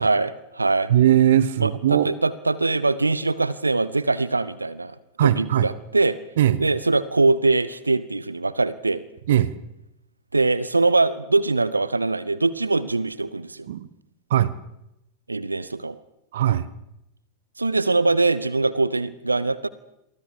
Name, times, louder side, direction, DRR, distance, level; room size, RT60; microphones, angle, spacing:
voice 1, 0.0-0.9 1.6-5.0 5.2-6.2 6.6-9.0 10.3-13.7 15.3-16.0 17.6-19.7, right 3 dB, 80° right, 18 dB, 0.8 m, -22 dB
voice 2, 0.9-2.1 5.2-5.7 6.4-6.6 9.3-9.5 13.7-13.9 14.3-14.5 16.3-16.7, right 11 dB, 60° right, 17 dB, 1.1 m, -19 dB
27.5 x 24.0 x 4.9 m, 0.83 s
figure-of-eight pair, 90°, 0 cm